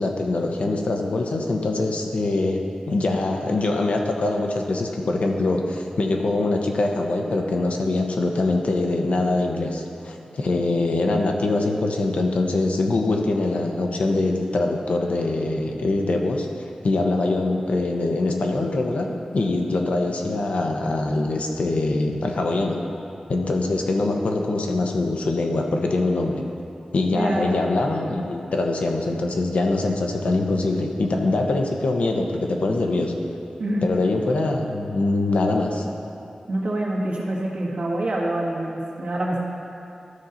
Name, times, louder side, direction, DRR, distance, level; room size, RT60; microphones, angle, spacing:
voice 1, 0.0-16.5 16.8-22.8 23.3-26.4 26.9-33.1 33.8-35.8, left 2 dB, 80° left, 2 dB, 0.9 m, -23 dB
voice 2, 27.1-27.6 33.6-33.9 36.5-39.4, right 1 dB, 70° right, -4 dB, 1.6 m, -26 dB
13.0 x 5.6 x 3.9 m, 2.6 s
wide cardioid pair, 100°, 2 cm